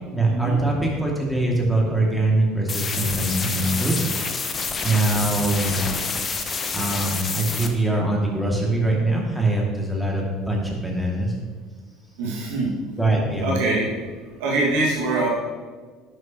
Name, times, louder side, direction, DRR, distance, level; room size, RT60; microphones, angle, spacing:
voice 1, 0.1-4.0 4.8-5.8 6.7-11.3 13.0-13.5, right 2 dB, ahead, -2 dB, 2.5 m, -23 dB
sound 1, 2.7-7.7, left 4 dB, 35° left, 1.0 m, -28 dB
voice 2, 12.2-12.7 13.4-13.9 14.4-15.3, right 2 dB, 65° right, -4 dB, 2.1 m, -23 dB
11.0 x 7.8 x 3.1 m, 1.5 s
figure-of-eight pair, 65°, 0 cm